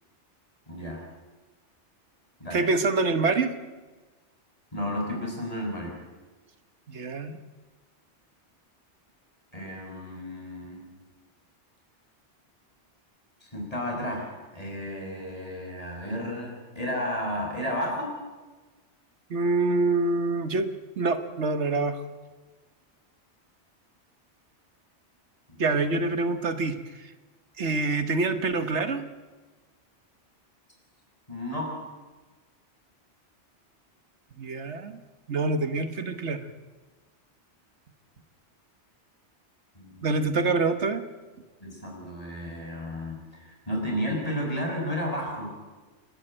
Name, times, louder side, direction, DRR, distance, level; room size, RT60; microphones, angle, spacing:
voice 1, 0.7-1.0 2.4-2.6 4.7-6.0 9.5-10.8 13.4-18.2 31.3-31.7 39.7-40.4 41.6-45.5, equal, 30° left, 0 dB, 6.0 m, -32 dB
voice 2, 2.5-3.5 6.9-7.4 19.3-20.7 21.0-22.0 25.6-27.1 27.6-29.0 34.4-35.0 35.3-36.5 40.0-41.0, right 3 dB, 75° right, 10 dB, 1.5 m, -26 dB
28.5 x 12.0 x 8.9 m, 1.3 s
omnidirectional pair, 1.2 m